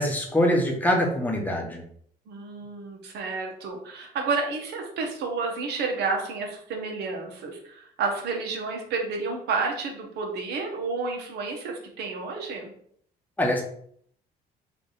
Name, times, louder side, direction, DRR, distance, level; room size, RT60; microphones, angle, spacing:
voice 1, 0.0-1.9 13.4-13.6, left 1 dB, 10° left, 1 dB, 0.8 m, -24 dB
voice 2, 2.3-12.7, right 4 dB, 75° right, 2 dB, 1.0 m, -30 dB
3.3 x 2.6 x 4.0 m, 0.64 s
cardioid pair, 110°, 17 cm